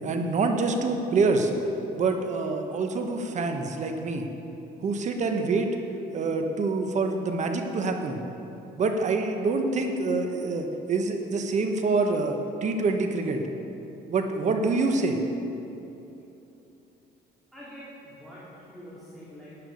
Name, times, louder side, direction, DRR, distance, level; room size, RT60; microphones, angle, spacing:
voice 1, 0.0-1.5 2.0-4.3 4.8-5.7 6.1-8.2 8.8-13.4 14.1-15.2, right 3 dB, 45° right, 5 dB, 1.2 m, -26 dB
voice 2, 17.5-19.5, equal, ahead, -9 dB, 2.6 m, -45 dB
13.0 x 9.0 x 5.3 m, 3.0 s
cardioid pair, 110°, 17 cm